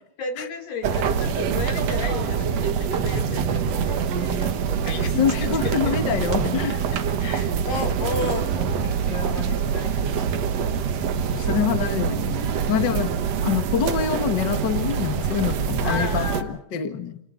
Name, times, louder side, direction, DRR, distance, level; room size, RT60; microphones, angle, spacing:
voice 1, 0.2-11.6 12.8-13.2 15.8-16.6, left 4 dB, 55° left, 5 dB, 4.8 m, -34 dB
sound 1, 0.8-16.4, right 7 dB, 75° right, 1.5 m, -25 dB
voice 2, 5.2-6.7 11.5-13.1 13.4-17.2, left 8 dB, 85° left, 8 dB, 0.9 m, -25 dB
30.0 x 29.0 x 3.9 m, 0.72 s
omnidirectional pair, 4.9 m